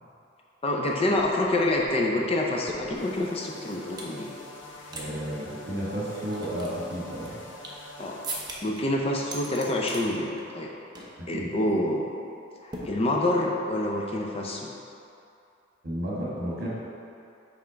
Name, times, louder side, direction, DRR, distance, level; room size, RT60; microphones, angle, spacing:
voice 1, 0.6-4.3 8.0-8.2 8.6-10.7 11.3-12.1 12.6-14.7, left 1 dB, 30° left, -1 dB, 0.5 m, -27 dB
sound 1, 0.8-0.9 1.2-4.2 4.6-5.1 5.3-5.4 5.9-7.9 8.2-8.8 9.2-10.0 10.4-10.7 10.9-11.2 11.5-11.7 12.7-13.5, right 2 dB, 20° right, 0.6 m, -41 dB
sound 2, 2.9-8.5, left 2 dB, 65° left, 0.7 m, -45 dB
voice 2, 4.9-7.4 11.2-11.5 15.8-16.7, equal, 55° right, -6 dB, 1.4 m, -32 dB
5.5 x 3.4 x 5.0 m, 2.6 s
head